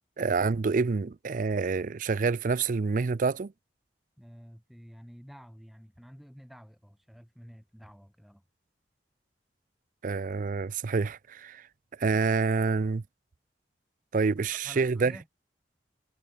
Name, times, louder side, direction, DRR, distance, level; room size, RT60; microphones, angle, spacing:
voice 1, 0.2-3.5 10.0-11.6 12.0-13.0 14.1-15.1, right 4 dB, 50° right, 0.4 m, -27 dB
voice 2, 4.2-8.4 14.5-15.3, equal, ahead, 2.6 m, -50 dB
head